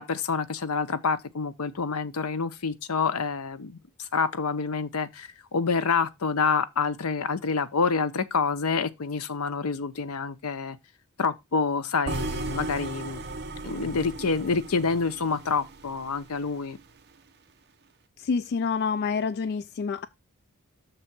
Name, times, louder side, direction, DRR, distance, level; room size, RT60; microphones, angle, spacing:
voice 1, 0.0-10.8 11.2-13.2 13.6-16.8, left 5 dB, 75° left, 0.7 m, -27 dB
sound 1, 12.1-16.2, right 3 dB, 50° right, 0.9 m, -35 dB
voice 2, 18.2-20.1, left 5 dB, 50° left, 0.3 m, -27 dB
6.7 x 3.7 x 5.9 m
head